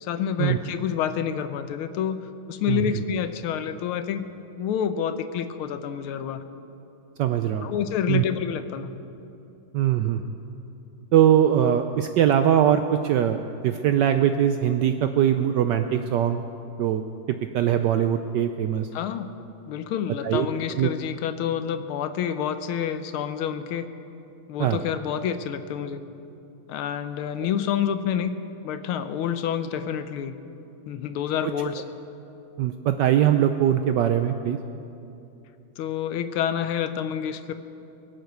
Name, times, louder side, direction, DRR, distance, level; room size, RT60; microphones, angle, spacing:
voice 1, 0.0-4.3 4.6-6.4 7.6-8.9 18.9-19.3 19.7-23.9 24.5-26.0 26.7-28.3 28.6-30.3 30.9-31.8 35.8-37.6, left 8 dB, 80° left, 11 dB, 1.5 m, -28 dB
voice 2, 7.2-7.7 8.1-8.2 9.7-10.2 11.1-16.4 16.8-17.0 17.3-18.9 20.2-20.5 20.8-20.9 24.6-24.8 32.6-34.6, right 10 dB, 75° right, 8 dB, 1.0 m, -21 dB
22.5 x 8.1 x 6.6 m, 2.8 s
omnidirectional pair, 2.4 m